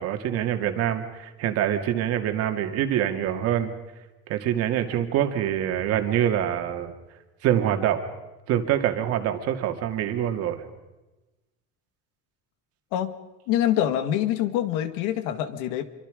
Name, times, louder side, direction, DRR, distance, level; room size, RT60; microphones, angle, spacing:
voice 1, 0.0-3.7 4.3-6.9 7.4-8.0 8.5-10.6, right 10 dB, 50° right, 6 dB, 2.3 m, -25 dB
voice 2, 13.5-15.8, left 11 dB, 85° left, 11 dB, 1.9 m, -25 dB
27.0 x 24.0 x 5.1 m, 1.1 s
cardioid pair, 170°, 30 cm